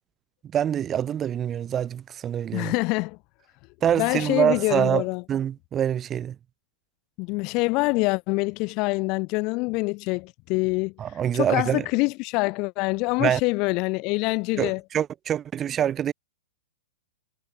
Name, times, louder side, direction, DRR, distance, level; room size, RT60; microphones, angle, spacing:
voice 1, 0.5-2.7 3.8-6.4 11.0-11.8 13.2-13.4 14.6-16.1, right 9 dB, 15° right, 6.3 m, -25 dB
voice 2, 2.5-3.2 4.0-5.2 7.2-10.9 11.3-14.8, left 27 dB, 30° left, 3.2 m, -25 dB
hypercardioid pair, 170°, 0 cm